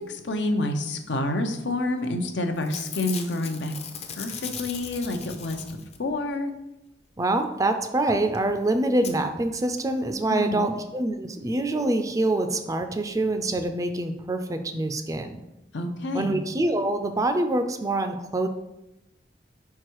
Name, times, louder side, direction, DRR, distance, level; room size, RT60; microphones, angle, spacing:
voice 1, 0.1-3.7 4.2-5.6 6.0-6.5 10.3-10.7 15.7-16.4, left 2 dB, 75° left, 5 dB, 0.7 m, -28 dB
Packing tape duct tape / Tearing, 2.0-2.3 2.5-6.1 8.1-8.2 8.3-8.4 9.0-9.1 9.8-9.9 10.1-10.2, left 6 dB, 35° left, 0.6 m, -38 dB
voice 2, 7.2-15.4 16.1-18.5, right 2 dB, 20° right, 7 dB, 0.4 m, -25 dB
4.7 x 4.5 x 4.5 m, 0.93 s
head